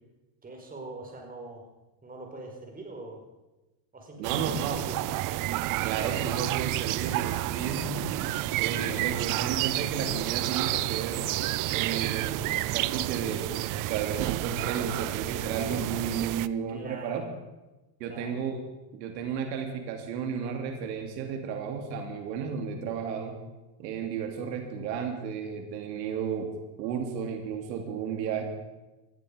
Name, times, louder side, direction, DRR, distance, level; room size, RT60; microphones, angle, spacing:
voice 1, 0.4-1.7 2.0-3.2 3.9-5.2 16.7-17.4 18.0-18.4, right 2 dB, 15° right, 1 dB, 4.8 m, -43 dB
sound 1, 4.2-16.5, right 17 dB, 40° right, 0.5 m, -30 dB
voice 2, 4.2-4.8 5.8-11.3 11.7-12.5 12.7-17.2 18.0-18.6 18.9-23.4 23.8-26.5 26.8-28.4, right 6 dB, 90° right, 4 dB, 3.0 m, -33 dB
19.0 x 14.0 x 5.2 m, 1.1 s
supercardioid pair, 125°, 49 cm